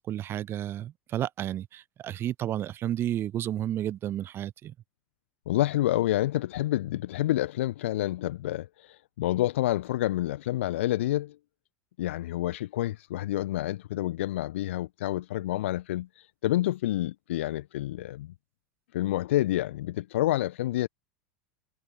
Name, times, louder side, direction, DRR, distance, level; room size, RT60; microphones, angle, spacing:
voice 1, 0.1-4.7, right 12 dB, 30° right, 0.8 m, -32 dB
voice 2, 5.5-11.3 12.0-16.1 16.4-18.3 18.9-20.9, left 14 dB, 60° left, 1.3 m, -28 dB
figure-of-eight pair, 85°, 7 cm